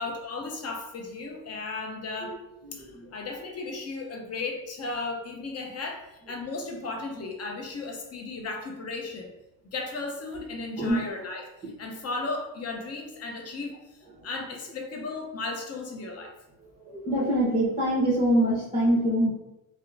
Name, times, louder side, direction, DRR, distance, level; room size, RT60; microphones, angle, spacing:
voice 1, 0.0-2.3 2.7-9.3 9.6-11.5 11.8-13.8 14.2-16.3, left 3 dB, 30° left, 1 dB, 0.6 m, -35 dB
voice 2, 16.9-19.3, right 1 dB, 15° right, -8 dB, 0.8 m, -23 dB
2.8 x 2.1 x 2.5 m, 0.92 s
supercardioid pair, 80°, 50 cm